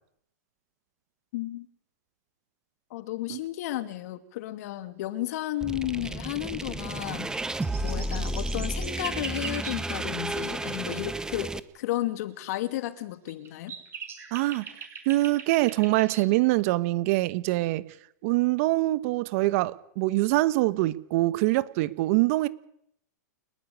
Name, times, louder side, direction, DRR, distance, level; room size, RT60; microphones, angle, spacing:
voice 1, 1.3-1.7 2.9-7.4 7.8-13.7, left 15 dB, 60° left, 2.5 m, -33 dB
sound 1, 5.6-11.6, right 2 dB, 5° right, 1.1 m, -32 dB
sound 2, 7.6-9.8 12.5-12.6 13.3-16.2, right 7 dB, 25° right, 6.0 m, -41 dB
voice 2, 14.3-14.7 15.1-17.9 18.2-22.5, right 19 dB, 50° right, 1.2 m, -24 dB
29.5 x 12.0 x 9.6 m
hypercardioid pair, 125°, 10 cm